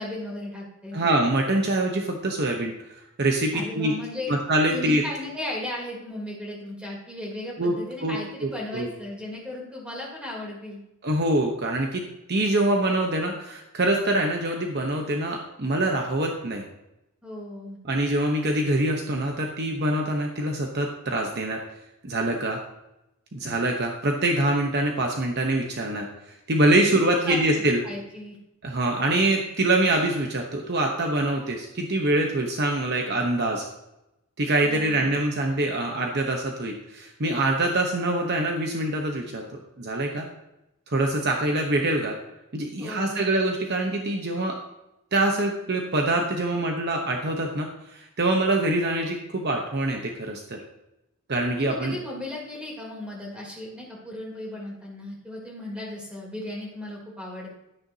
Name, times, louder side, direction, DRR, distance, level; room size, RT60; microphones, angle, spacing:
voice 1, 0.0-1.0 3.5-4.3 4.7-10.8 17.2-17.8 26.8-26.9 27.2-28.4 34.6-35.1 42.8-43.3 51.6-57.5, left 1 dB, 5° right, -3 dB, 3.2 m, -36 dB
voice 2, 0.9-2.7 3.2-3.9 4.3-5.0 7.6-7.7 8.0-8.9 11.0-16.6 17.8-21.6 22.0-22.6 23.3-27.8 28.6-33.7 34.4-39.5 39.8-40.3 40.9-42.2 42.5-44.5 45.1-50.6 51.3-51.9, right 1 dB, 45° right, 2 dB, 0.9 m, -24 dB
12.0 x 10.0 x 2.8 m, 0.90 s
head